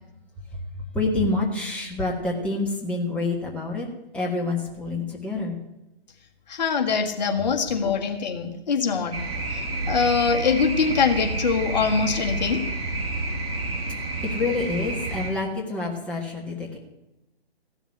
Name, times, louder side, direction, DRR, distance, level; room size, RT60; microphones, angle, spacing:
voice 1, 0.9-3.9 4.1-5.6 14.2-16.8, left 3 dB, 5° left, -2 dB, 1.6 m, -27 dB
voice 2, 6.5-9.2 9.5-12.6, left 5 dB, 45° left, 4 dB, 1.8 m, -23 dB
sound 1, 9.1-15.3, right 2 dB, 40° right, 7.0 m, -29 dB
15.5 x 7.2 x 9.9 m, 0.93 s
figure-of-eight pair, 135°, 30 cm